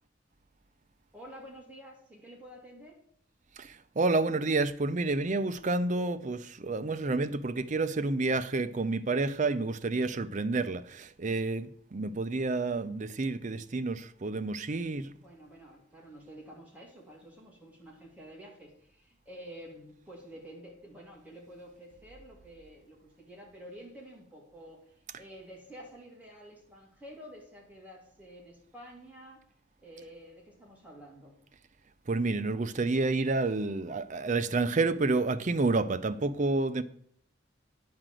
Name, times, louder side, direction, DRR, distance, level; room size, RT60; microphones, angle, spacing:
voice 1, 1.1-3.0 15.1-29.4 29.8-31.4, equal, 10° right, 2.8 m, -50 dB
voice 2, 3.6-15.1 32.1-36.8, right 3 dB, 40° right, 0.6 m, -29 dB
9.4 x 5.0 x 7.5 m
head